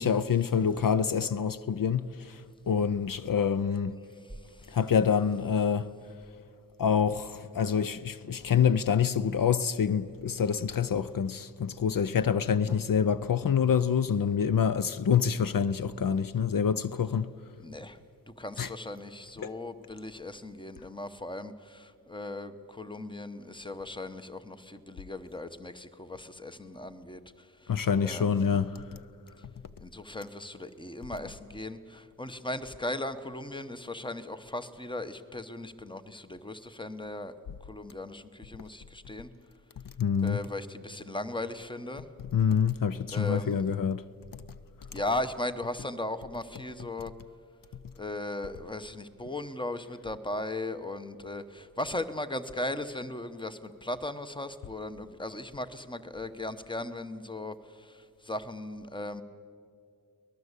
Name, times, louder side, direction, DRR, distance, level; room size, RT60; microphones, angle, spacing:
voice 1, 0.0-4.0 4.7-5.9 6.8-17.3 18.6-18.7 19.4-19.5 27.7-29.0 40.0-40.4 42.3-44.0 44.3-44.4, left 7 dB, 65° left, 0.6 m, -26 dB
voice 2, 4.2-4.8 17.6-18.0 18.3-27.7 28.0-28.5 29.8-37.3 37.6-39.3 40.2-42.1 43.1-43.6 44.9-47.1 47.9-59.2, left 1 dB, 15° left, 1.0 m, -37 dB
24.5 x 19.0 x 8.2 m
wide cardioid pair, 100°, 36 cm